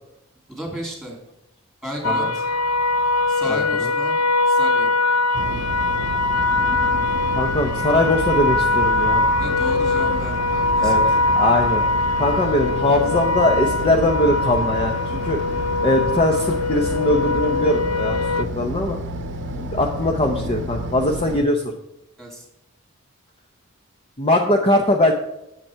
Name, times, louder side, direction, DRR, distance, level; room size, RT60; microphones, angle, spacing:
voice 1, 0.5-1.2 1.8-2.5 3.3-4.2 4.5-4.9 9.4-11.2 22.2-22.4, equal, ahead, -1 dB, 2.5 m, -33 dB
sound 1, 2.0-18.4, left 3 dB, 90° left, 0.6 m, -22 dB
voice 2, 3.5-3.9 7.3-9.3 10.8-11.0 11.3-11.8 12.2-15.4 15.8-19.0 19.7-21.6 24.2-25.1, left 1 dB, 25° left, 2 dB, 0.7 m, -21 dB
sound 2, 5.3-21.4, right 1 dB, 55° right, 0.8 m, -30 dB
8.3 x 7.4 x 4.5 m, 0.90 s
head